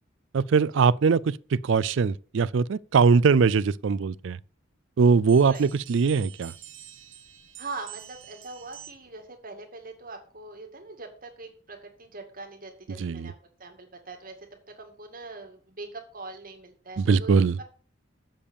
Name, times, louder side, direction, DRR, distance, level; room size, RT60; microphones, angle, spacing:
voice 1, 0.3-4.4 5.0-6.5 13.0-13.3 17.0-17.6, right 5 dB, 65° right, 0.4 m, -21 dB
sound 1, 5.3-9.2, right 10 dB, 85° right, 1.3 m, -47 dB
voice 2, 7.6-13.3 13.6-14.5 14.8-17.6, right 3 dB, 45° right, 2.3 m, -42 dB
7.6 x 6.9 x 6.9 m
head